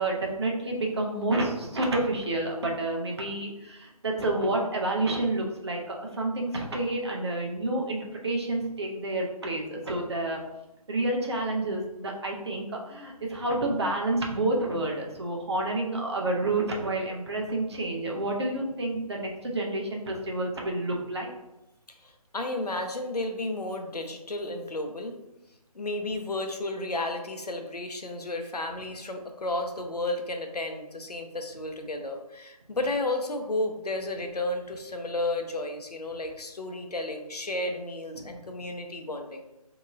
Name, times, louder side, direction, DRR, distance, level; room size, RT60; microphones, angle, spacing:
voice 1, 0.0-10.4 10.9-21.3 38.2-38.3, right 2 dB, 45° right, 0 dB, 0.7 m, -29 dB
voice 2, 22.0-25.2 25.7-39.5, left 2 dB, 85° left, 5 dB, 0.6 m, -32 dB
4.0 x 2.9 x 2.4 m, 0.93 s
figure-of-eight pair, 155°, 20 cm